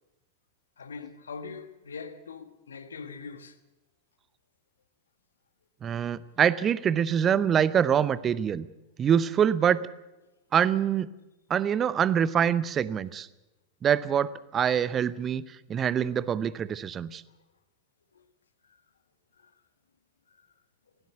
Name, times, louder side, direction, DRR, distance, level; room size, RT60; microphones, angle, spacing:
voice 1, 0.8-3.6 18.1-18.2 19.4-19.5, left 5 dB, 70° left, 1.5 m, -42 dB
voice 2, 5.8-8.7 9.0-9.8 10.5-11.1 11.5-13.3 13.8-15.4 15.7-17.2, right 8 dB, 25° right, 0.7 m, -25 dB
19.0 x 17.0 x 8.1 m
figure-of-eight pair, 90°, 0 cm